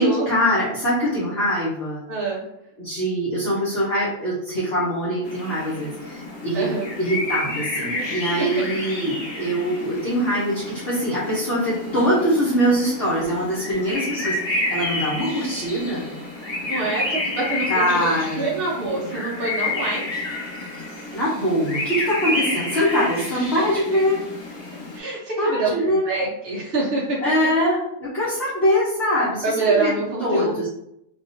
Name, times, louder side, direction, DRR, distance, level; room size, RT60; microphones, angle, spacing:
voice 1, 0.0-2.0 2.8-6.7 7.0-16.1 17.7-18.5 21.1-24.2 25.4-26.0 27.2-29.9 30.2-30.7, equal, 50° left, -10 dB, 1.0 m, -23 dB
voice 2, 2.1-2.4 6.5-7.0 7.9-8.2 11.9-12.1 13.9-14.1 16.7-18.1 18.4-20.2 22.3-22.4 23.5-23.6 24.9-27.2 29.4-30.7, right 3 dB, 50° right, -5 dB, 0.7 m, -26 dB
sound 1, 5.2-25.0, left 2 dB, 35° left, 0.4 m, -30 dB
3.5 x 2.4 x 2.6 m, 0.80 s
omnidirectional pair, 1.6 m